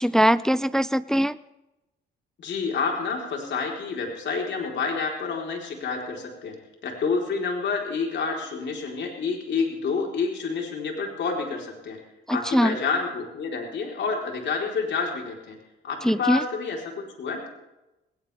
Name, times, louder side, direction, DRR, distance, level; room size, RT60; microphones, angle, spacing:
voice 1, 0.0-1.4 12.3-12.8 16.0-16.4, equal, 5° left, 16 dB, 0.5 m, -21 dB
voice 2, 2.4-6.5 6.8-12.0 12.3-15.5 15.8-17.4, left 5 dB, 65° left, 1 dB, 4.2 m, -28 dB
19.5 x 18.5 x 3.5 m, 0.96 s
cardioid pair, 90°, 20 cm